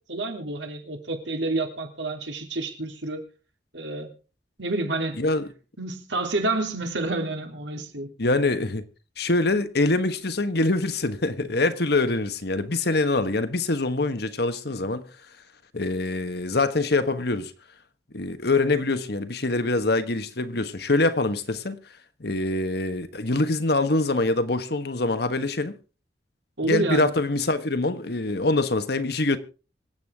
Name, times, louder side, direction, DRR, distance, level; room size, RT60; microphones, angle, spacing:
voice 1, 0.1-3.2 3.7-4.1 4.6-5.2 5.8-8.1 26.6-27.1, right 2 dB, 80° right, 3.3 m, -29 dB
voice 2, 5.2-5.5 8.2-8.8 9.2-15.0 15.7-17.5 18.1-21.8 22.2-25.7 26.6-29.4, left 2 dB, 60° left, 1.4 m, -24 dB
25.5 x 8.5 x 3.6 m
head